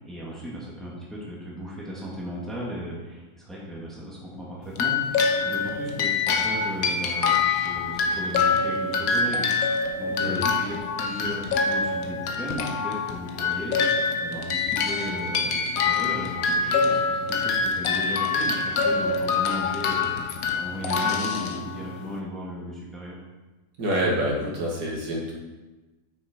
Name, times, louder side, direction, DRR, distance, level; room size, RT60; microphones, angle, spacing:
voice 1, 0.0-9.4 9.9-13.8 14.2-20.1 20.5-23.2, equal, ahead, -6 dB, 2.0 m, -36 dB
sound 1, 4.7-22.1, left 4 dB, 65° left, 1.2 m, -25 dB
voice 2, 23.8-25.3, equal, 70° right, -3 dB, 2.4 m, -27 dB
8.4 x 6.5 x 4.4 m, 1.2 s
omnidirectional pair, 1.7 m